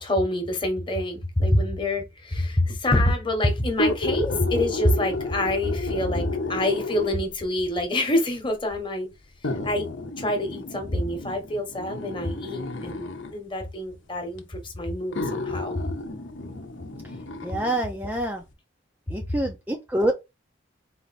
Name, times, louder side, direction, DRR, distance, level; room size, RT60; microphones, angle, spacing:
voice 1, 0.0-9.1 9.6-9.9 10.2-15.8, left 1 dB, 25° left, 1.1 m, -26 dB
sound 1, 3.7-7.4 8.3-8.4 9.4-13.4 14.4-14.5 15.1-17.8 18.2-18.3, left 2 dB, 75° left, 0.8 m, -32 dB
voice 2, 17.4-18.4 19.1-20.1, right 1 dB, 10° right, 0.4 m, -26 dB
4.3 x 2.6 x 4.1 m
head